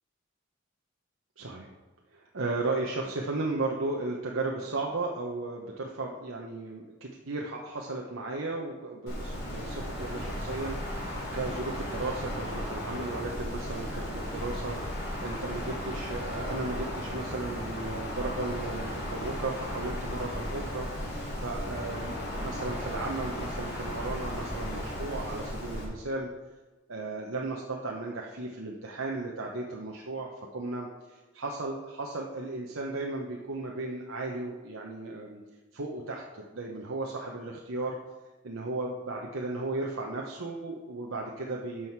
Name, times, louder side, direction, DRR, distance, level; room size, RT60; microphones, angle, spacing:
voice 1, 1.4-1.7 2.1-20.9 21.4-26.3 26.9-35.4 35.7-38.0 38.4-41.9, right 2 dB, 85° right, -1 dB, 1.0 m, -35 dB
Wind, 9.1-25.8, equal, 55° left, 3.5 m, -35 dB
11.5 x 6.4 x 4.6 m, 1.2 s
head